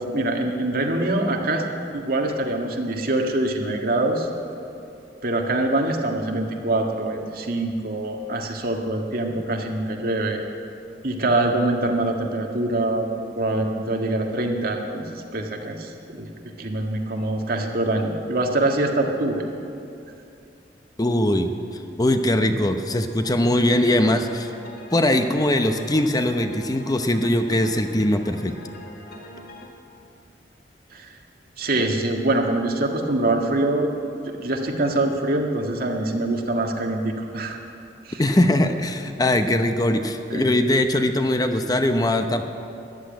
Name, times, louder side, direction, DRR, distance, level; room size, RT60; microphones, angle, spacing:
voice 1, 0.0-1.6 1.9-4.3 5.2-10.4 11.0-13.1 13.4-16.3 16.6-19.4 30.9-31.1 31.6-33.9 34.3-37.6 38.0-38.2 40.3-40.5, right 2 dB, 60° right, 2 dB, 1.7 m, -24 dB
voice 2, 21.0-21.5 22.0-24.5 24.9-28.6 38.2-42.5, left 1 dB, 20° left, 7 dB, 0.7 m, -21 dB
sound 1, 23.2-29.7, left 2 dB, 60° left, 1.8 m, -43 dB
14.0 x 10.5 x 9.2 m, 2.6 s
head